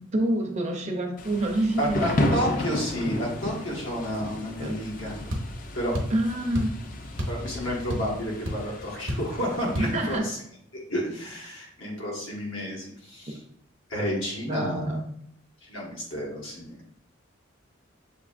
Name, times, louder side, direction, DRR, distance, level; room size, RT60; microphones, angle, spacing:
voice 1, 0.0-2.5 4.6-4.7 6.1-6.7 9.8-10.3 14.5-15.0, right 1 dB, 35° right, 3 dB, 0.6 m, -27 dB
Thunder / Rain, 1.2-10.2, left 1 dB, 45° left, 0.4 m, -33 dB
voice 2, 1.8-5.1 5.7-6.0 7.3-10.4 10.7-13.4 13.9-15.0 15.6-16.8, equal, 80° left, -3 dB, 1.4 m, -31 dB
sound 1, 5.3-5.5 5.9-6.2 6.5-6.8 7.2-7.4 7.7-8.2 8.5-8.6 9.1-9.3 9.7-9.9, equal, 70° right, 0.8 m, -29 dB
6.7 x 2.8 x 2.5 m, 0.70 s
head